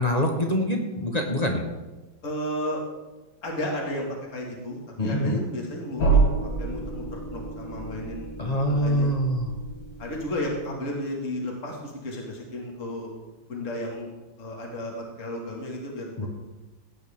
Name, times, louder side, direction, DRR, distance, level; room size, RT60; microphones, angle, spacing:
voice 1, 0.0-1.6 5.0-5.4 8.4-9.5 16.2-16.3, equal, 25° left, 2 dB, 1.1 m, -25 dB
voice 2, 2.2-2.8 3.4-6.2 6.6-9.2 10.0-13.1 13.5-14.1 14.4-16.3, left 1 dB, 40° left, -1 dB, 2.4 m, -33 dB
sound 1, 6.0-10.7, right 4 dB, 90° left, 2.4 m, -28 dB
17.0 x 9.5 x 3.7 m, 1.1 s
omnidirectional pair, 2.0 m